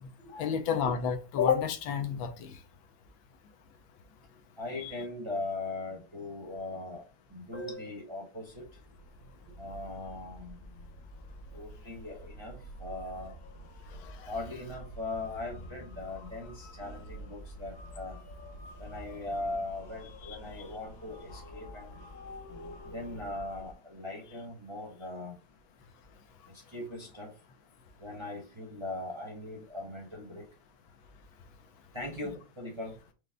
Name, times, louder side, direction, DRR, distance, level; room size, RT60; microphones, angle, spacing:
voice 1, 0.0-2.6 4.8-4.9 14.0-14.3 20.3-20.4, left 7 dB, 90° left, 1.5 m, -30 dB
voice 2, 4.6-7.0 7.3-8.6 9.6-10.6 11.5-13.4 14.3-18.2 18.8-22.0 22.9-25.3 26.7-27.3 28.0-30.4 31.9-33.0, left 2 dB, 25° right, 0.7 m, -39 dB
sound 1, 8.4-23.7, equal, 60° left, 1.1 m, -48 dB
5.1 x 2.1 x 3.5 m
omnidirectional pair, 2.1 m